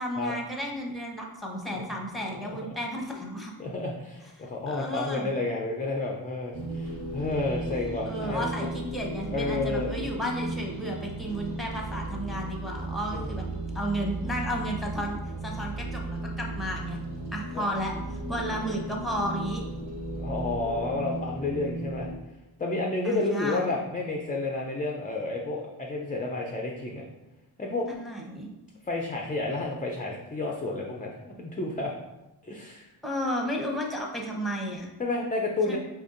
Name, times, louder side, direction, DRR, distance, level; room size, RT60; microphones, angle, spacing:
voice 1, 0.0-3.5 4.4-5.3 8.0-13.4 13.7-17.0 17.3-17.9 18.3-19.6 23.0-23.7 27.9-28.5 33.0-34.9 35.7-35.8, equal, ahead, -1 dB, 0.8 m, -33 dB
voice 2, 3.6-8.5 9.3-9.9 13.1-13.3 17.5-17.6 20.1-22.1 22.6-27.0 27.6-27.9 28.8-31.9 32.4-32.9 35.0-35.8, left 2 dB, 20° left, 0 dB, 0.4 m, -30 dB
sound 1, 6.5-22.2, right 1 dB, 50° right, 1.4 m, -35 dB
4.5 x 2.6 x 2.5 m, 0.99 s
cardioid pair, 50°, 50 cm